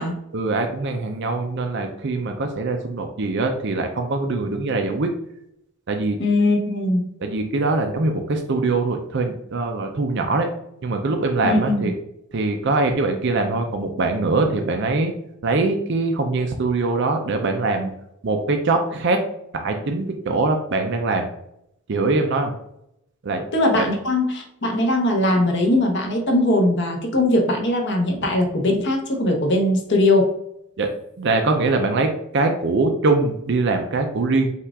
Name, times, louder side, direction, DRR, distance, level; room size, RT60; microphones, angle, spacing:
voice 1, 0.3-5.1 5.9-6.2 7.2-10.5 10.8-11.9 12.3-15.1 15.4-17.9 18.2-19.2 19.5-21.3 21.9-22.5 23.2-23.4 23.7-23.9 30.8-30.9 31.2-34.5, right 3 dB, 50° right, 4 dB, 0.5 m, -22 dB
voice 2, 6.2-7.1 11.4-11.8 23.5-30.4, left 1 dB, 50° left, 1 dB, 1.0 m, -20 dB
5.6 x 2.5 x 3.5 m, 0.77 s
head